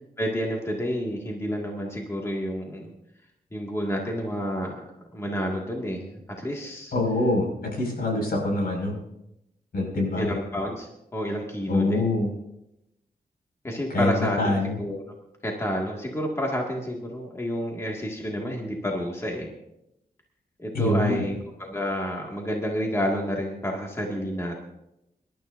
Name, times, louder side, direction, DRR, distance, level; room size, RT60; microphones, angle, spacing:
voice 1, 0.2-2.9 3.5-4.8 5.1-6.9 10.2-12.1 13.6-14.5 14.8-15.0 15.4-19.5 20.6-24.6, equal, 15° left, -1 dB, 1.9 m, -29 dB
voice 2, 6.9-9.0 9.7-10.3 11.7-12.3 13.9-14.8 20.7-21.3, left 2 dB, 70° left, 0 dB, 5.5 m, -25 dB
26.0 x 12.0 x 2.6 m, 0.85 s
wide cardioid pair, 145°, 16 cm